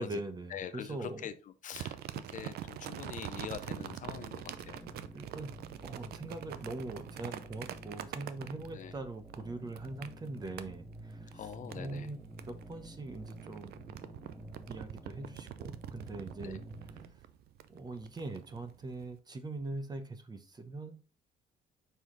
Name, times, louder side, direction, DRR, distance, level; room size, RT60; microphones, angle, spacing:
voice 1, 0.0-1.3 5.1-17.0 17.7-21.0, right 2 dB, 25° right, 0.9 m, -42 dB
voice 2, 0.5-1.3 1.6-4.8 8.7-8.9 11.3-12.1 16.4-16.6, left 9 dB, 50° left, 0.6 m, -44 dB
sound 1, 1.7-8.9 9.3-10.7 11.3-12.1 12.4-19.0, right 11 dB, 70° right, 0.6 m, -45 dB
sound 2, 3.5-17.1, right 2 dB, 5° right, 1.2 m, -50 dB
5.5 x 4.8 x 3.9 m
cardioid pair, 110°, 17 cm